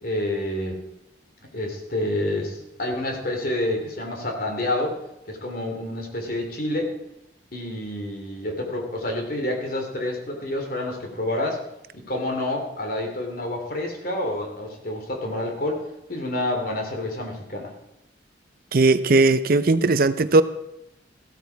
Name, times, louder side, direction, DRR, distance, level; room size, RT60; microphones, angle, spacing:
voice 1, 0.0-0.8 1.5-5.0 5.3-6.9 7.5-11.6 11.9-15.8 16.1-17.7, left 1 dB, 50° left, 2 dB, 3.0 m, -28 dB
voice 2, 18.7-20.4, right 3 dB, 50° right, 12 dB, 0.6 m, -18 dB
15.0 x 12.5 x 4.6 m, 0.84 s
head